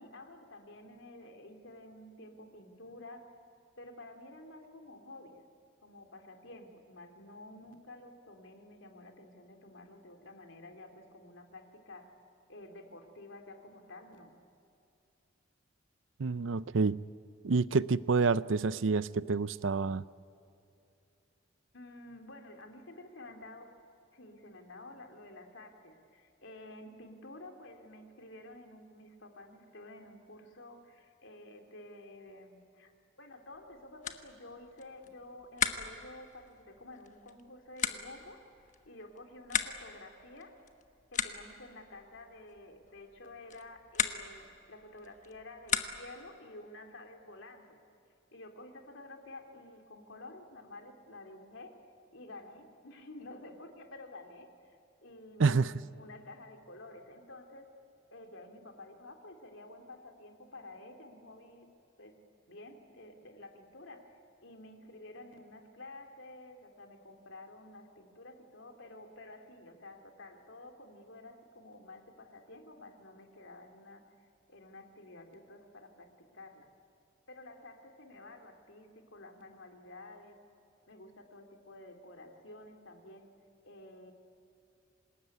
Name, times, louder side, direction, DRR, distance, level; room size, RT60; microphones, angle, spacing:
voice 1, 0.0-3.3 3.8-5.3 5.8-12.1 12.5-14.3 21.7-23.7 24.1-32.9 33.2-40.6 41.1-47.8 48.3-51.7 52.1-54.5 55.0-57.7 58.1-61.7 62.0-62.2 62.5-74.0 74.5-76.7 77.3-80.4 80.9-83.3 83.6-84.1, left 2 dB, 75° left, 4 dB, 3.1 m, -51 dB
voice 2, 16.2-17.0 17.4-20.0 55.4-55.7, right 4 dB, 75° right, 17 dB, 0.6 m, -28 dB
sound 1, 33.5-46.3, left 7 dB, 40° left, 1.2 m, -39 dB
26.5 x 20.0 x 9.6 m, 2.6 s
head